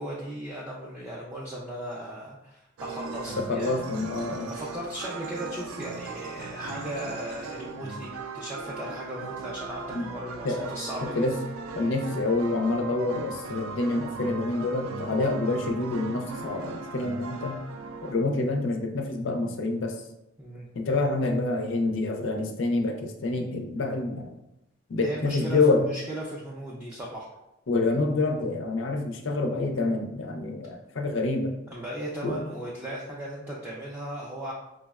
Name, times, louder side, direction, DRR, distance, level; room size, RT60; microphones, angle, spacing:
voice 1, 0.0-3.7 4.5-11.2 15.1-15.2 20.4-20.7 25.0-25.6 25.9-27.3 31.7-34.5, right 1 dB, 10° right, -6 dB, 0.3 m, -37 dB
sound 1, 2.8-18.1, right 4 dB, 85° right, 0.3 m, -38 dB
voice 2, 3.4-4.5 9.9-10.1 10.4-10.7 11.1-11.4 11.7-17.6 18.0-20.0 20.7-24.2 24.9-25.9 27.7-31.5 32.2-32.4, left 2 dB, 60° left, 4 dB, 0.4 m, -27 dB
4.8 x 2.0 x 2.3 m, 0.89 s
head